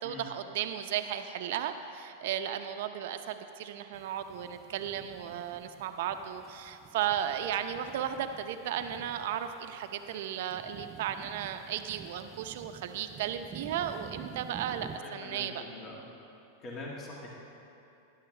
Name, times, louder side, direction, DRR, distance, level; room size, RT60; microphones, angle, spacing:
voice 1, 0.0-15.6, right 10 dB, 65° right, 8 dB, 0.7 m, -35 dB
sound 1, 3.9-15.0, right 7 dB, 25° right, 0.4 m, -50 dB
voice 2, 14.9-16.0 16.6-17.3, left 2 dB, 30° left, -3 dB, 1.7 m, -43 dB
13.0 x 11.0 x 3.3 m, 2.8 s
hypercardioid pair, 125°, 0 cm